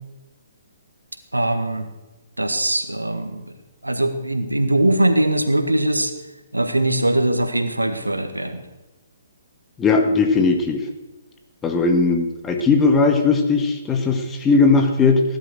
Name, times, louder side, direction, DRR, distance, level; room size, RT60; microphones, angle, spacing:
voice 1, 1.3-1.9 2.4-3.4 3.8-6.1 6.5-8.6, right 1 dB, 90° right, 8 dB, 1.9 m, -21 dB
voice 2, 9.8-10.8 11.6-15.2, left 4 dB, 15° left, 4 dB, 2.0 m, -18 dB
18.5 x 11.5 x 6.5 m, 1.1 s
figure-of-eight pair, 130°, 0 cm